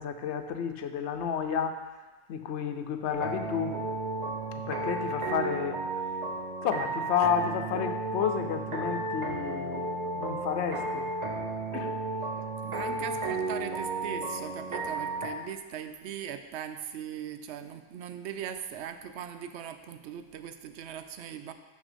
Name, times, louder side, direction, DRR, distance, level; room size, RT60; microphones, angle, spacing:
voice 1, 0.0-1.8 2.3-3.8 4.5-5.8 6.6-11.1 11.7-12.0 12.9-13.6, left 7 dB, 90° left, 7 dB, 0.9 m, -31 dB
sound 1, 3.1-15.3, right 2 dB, 45° right, 0.8 m, -33 dB
voice 2, 12.6-21.5, right 9 dB, 80° right, 9 dB, 0.8 m, -39 dB
6.1 x 5.9 x 5.0 m, 1.2 s
omnidirectional pair, 1.1 m